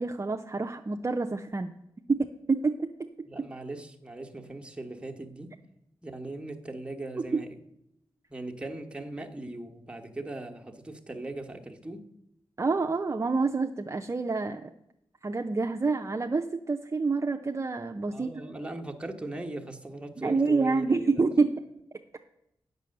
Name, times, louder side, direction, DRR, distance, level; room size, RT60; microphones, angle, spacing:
voice 1, 0.0-1.7 2.1-3.1 7.3-7.4 12.6-14.7 15.2-18.4 20.2-21.6, right 4 dB, 35° right, 0.5 m, -27 dB
voice 2, 3.2-5.6 6.0-7.6 8.3-12.1 18.1-21.3, right 2 dB, 10° right, 1.3 m, -39 dB
8.1 x 6.8 x 6.4 m
cardioid pair, 50°, 9 cm